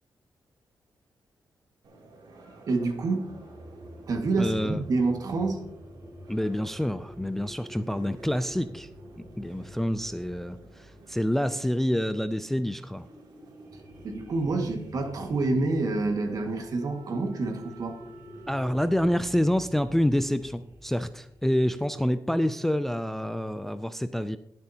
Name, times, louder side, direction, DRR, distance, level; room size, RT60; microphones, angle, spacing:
sound 1, 1.8-19.0, right 2 dB, 80° right, 2.9 m, -54 dB
voice 1, 2.7-3.2 4.1-5.6 13.7-18.0, right 3 dB, 55° right, 4 dB, 1.9 m, -28 dB
sound 2, 3.3-12.3 13.0-21.8, equal, 20° right, 4.1 m, -48 dB
voice 2, 4.4-4.8 6.3-8.9 9.2-10.6 11.1-13.1 18.5-24.4, equal, 5° left, 12 dB, 0.3 m, -27 dB
21.0 x 7.7 x 2.9 m, 0.74 s
wide cardioid pair, 140°, 7 cm